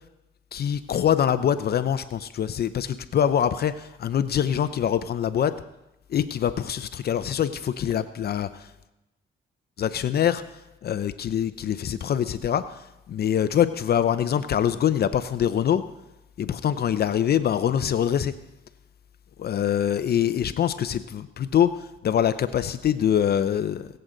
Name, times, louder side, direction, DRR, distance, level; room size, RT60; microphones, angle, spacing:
voice 1, 0.5-5.5 6.1-8.7 9.8-10.4 10.8-12.8 13.1-15.8 16.4-18.3 19.4-23.9, left 9 dB, 55° left, 12 dB, 0.6 m, -24 dB
23.0 x 7.9 x 3.9 m, 0.94 s
cardioid pair, 90°, 20 cm